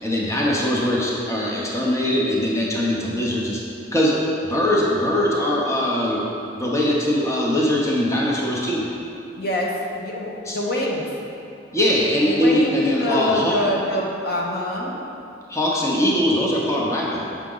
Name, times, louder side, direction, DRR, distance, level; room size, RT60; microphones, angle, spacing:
voice 1, 0.0-3.6 3.9-4.2 4.4-6.3 6.6-8.9 10.5-10.6 11.7-13.6 15.5-17.2, left 1 dB, 15° left, -4 dB, 0.8 m, -21 dB
voice 2, 9.4-9.7 10.0-11.0 12.2-15.0, left 1 dB, 60° left, -2 dB, 0.9 m, -25 dB
7.2 x 5.9 x 3.8 m, 2.7 s
head